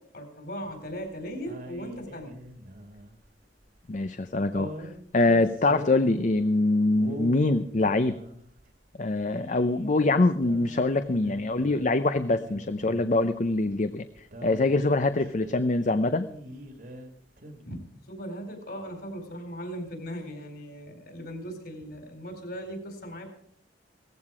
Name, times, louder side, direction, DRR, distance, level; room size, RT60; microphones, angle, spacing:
voice 1, 0.0-2.4 17.6-17.8 18.1-23.3, equal, 60° left, 5 dB, 4.5 m, -38 dB
sound 1, 0.6-1.1 1.5-3.3 4.5-6.4 6.9-8.7 9.2-11.9 12.2-13.4 13.7-13.8 14.2-17.1 17.4-17.6, equal, 50° right, 2.0 m, -43 dB
voice 2, 3.9-4.7 5.1-8.2 9.0-16.3, left 2 dB, 45° left, 11 dB, 0.6 m, -24 dB
17.5 x 15.0 x 4.9 m, 0.66 s
head